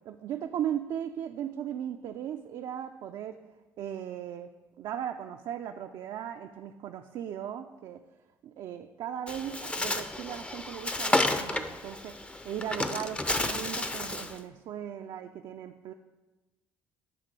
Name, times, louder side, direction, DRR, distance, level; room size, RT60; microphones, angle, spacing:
voice 1, 0.1-3.4 3.8-4.5 4.8-8.0 8.4-12.2 12.4-15.9, right 10 dB, 60° right, 6 dB, 0.3 m, -37 dB
Bird, 9.3-14.4, left 2 dB, 15° left, 0.5 m, -31 dB
8.8 x 2.9 x 4.7 m, 1.2 s
hypercardioid pair, 65°, 8 cm